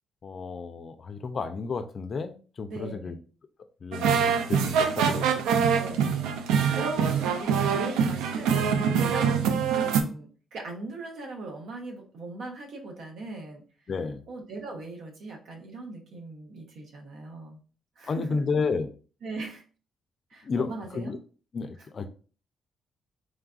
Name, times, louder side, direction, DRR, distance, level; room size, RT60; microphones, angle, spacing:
voice 1, 0.2-3.2 3.8-5.5 7.0-7.1 13.9-14.2 18.1-18.9 20.4-21.2 21.5-22.1, left 4 dB, 50° left, 0.4 m, -32 dB
voice 2, 2.7-3.2 5.6-13.6 14.3-17.6 18.0-18.4 19.2-19.6 20.3-21.1, right 2 dB, 70° right, 0.9 m, -39 dB
sound 1, 3.9-10.0, right 7 dB, 85° right, 0.3 m, -24 dB
3.2 x 2.3 x 2.4 m
supercardioid pair, 60°, 0 cm